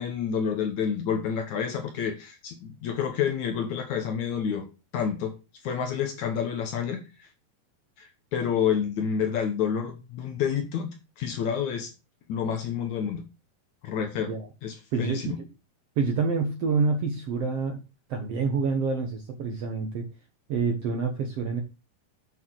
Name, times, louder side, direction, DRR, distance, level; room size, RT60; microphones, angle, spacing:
voice 1, 0.0-4.7 4.9-5.3 5.6-7.0 8.0-10.9 11.2-11.9 12.3-13.2 13.8-14.3 14.6-15.4, left 7 dB, 65° left, 6 dB, 2.1 m, -29 dB
voice 2, 14.9-15.5 16.0-17.8 18.1-20.1 20.5-21.6, right 4 dB, 60° right, 4 dB, 1.7 m, -27 dB
8.5 x 6.5 x 4.6 m, 0.29 s
omnidirectional pair, 4.2 m